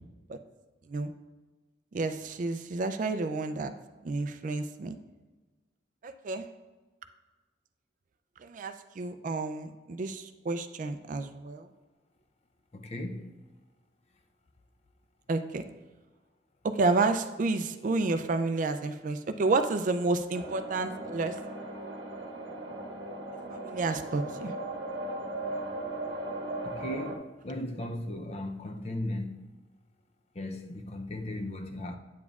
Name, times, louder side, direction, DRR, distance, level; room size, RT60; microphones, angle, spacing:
voice 1, 1.9-3.7 4.0-5.0 6.0-6.5 8.4-11.7 15.3-15.6 16.6-21.4 23.5-24.5, right 3 dB, 45° right, 0.4 m, -30 dB
voice 2, 12.7-13.3 26.6-29.4 30.4-32.0, left 1 dB, 35° left, 0.5 m, -36 dB
sound 1, 20.3-27.2, right 2 dB, 80° right, 1.0 m, -38 dB
9.3 x 7.1 x 2.4 m
head